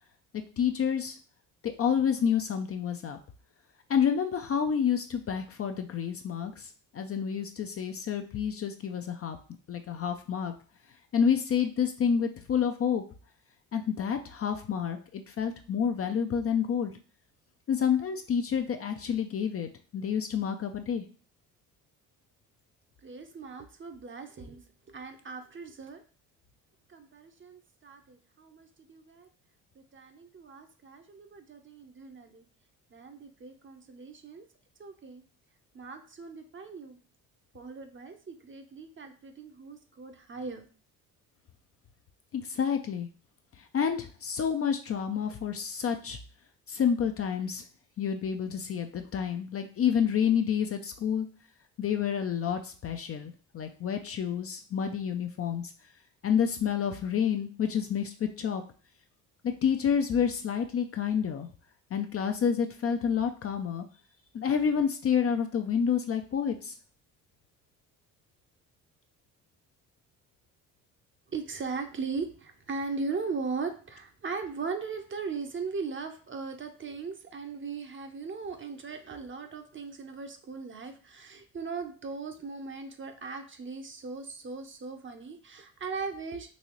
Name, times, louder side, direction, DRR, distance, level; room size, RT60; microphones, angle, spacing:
voice 1, 0.6-1.2 1.6-3.2 3.9-9.4 9.7-10.5 11.1-13.0 13.7-16.9 17.7-21.0 42.3-43.1 43.6-46.2 46.7-47.6 48.0-51.3 51.8-55.7 56.2-58.6 59.4-61.5 61.9-63.9 64.3-66.7, left 7 dB, 35° left, 5 dB, 0.5 m, -29 dB
voice 2, 23.0-24.6 24.9-26.0 26.9-29.3 29.7-32.4 32.9-34.4 34.8-35.2 35.7-37.0 37.5-40.7 71.3-86.5, right 4 dB, 30° right, 6 dB, 0.7 m, -38 dB
4.1 x 2.7 x 3.0 m, 0.40 s
supercardioid pair, 65°, 39 cm